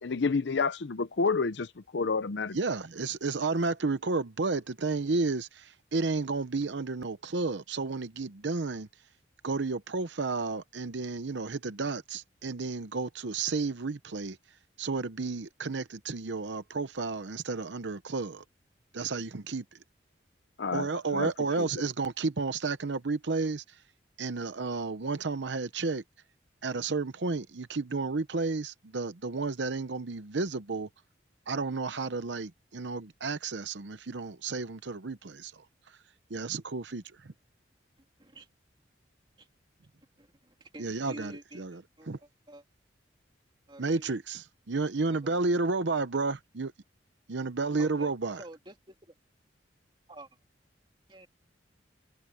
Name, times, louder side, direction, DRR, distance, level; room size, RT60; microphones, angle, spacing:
voice 1, 0.0-2.6 20.6-20.9 21.1-21.3 21.6-21.7, left 4 dB, 65° left, 0.6 m, -29 dB
voice 2, 2.5-8.9 9.4-18.4 18.9-19.8 20.7-23.8 24.2-26.0 26.6-30.9 31.5-36.0 36.3-37.3 40.8-42.2 43.8-46.7 47.3-48.4, right 3 dB, 70° right, 0.8 m, -32 dB
voice 3, 40.6-41.6 42.0-42.1 42.5-42.6 43.7-44.1 45.1-45.4 47.8-48.1 48.4-48.9 50.1-50.3 51.1-51.3, right 1 dB, 25° right, 2.7 m, -48 dB
head